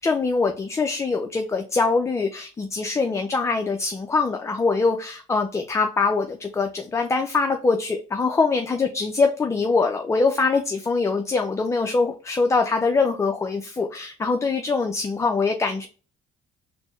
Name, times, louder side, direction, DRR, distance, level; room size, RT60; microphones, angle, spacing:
voice 1, 0.0-15.9, left 4 dB, 15° left, 5 dB, 0.4 m, -23 dB
4.2 x 2.1 x 3.0 m, 0.35 s
cardioid pair, 110°, 17 cm